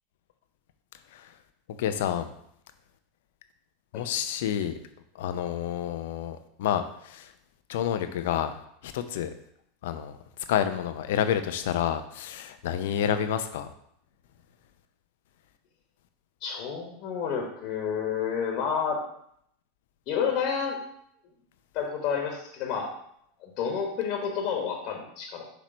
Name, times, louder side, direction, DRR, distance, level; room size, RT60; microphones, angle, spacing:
voice 1, 1.8-2.3 3.9-4.8 5.2-7.3 7.7-8.5 8.8-9.3 9.8-10.2 10.5-13.7, left 9 dB, 70° left, 9 dB, 0.5 m, -29 dB
voice 2, 16.4-19.0 20.1-20.8 21.7-22.9 23.4-25.4, left 7 dB, 55° left, 0 dB, 1.3 m, -30 dB
6.1 x 3.1 x 5.1 m, 0.71 s
hypercardioid pair, 90°, 0 cm